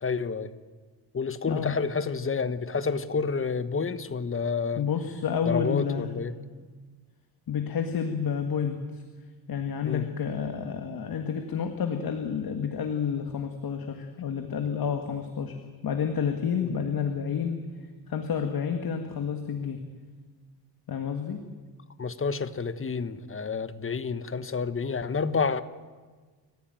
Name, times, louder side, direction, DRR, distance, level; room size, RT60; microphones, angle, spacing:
voice 1, 0.0-0.5 1.1-4.8 5.5-6.3 9.9-10.1 16.6-16.7 22.0-25.6, left 5 dB, 30° left, 12 dB, 1.3 m, -29 dB
voice 2, 1.5-1.8 4.8-6.2 7.5-9.0 9.5-15.6 15.8-17.7 18.1-19.8 20.9-21.4, left 7 dB, 60° left, 6 dB, 1.9 m, -30 dB
30.0 x 15.0 x 9.2 m, 1.4 s
cardioid pair, 125°, 40 cm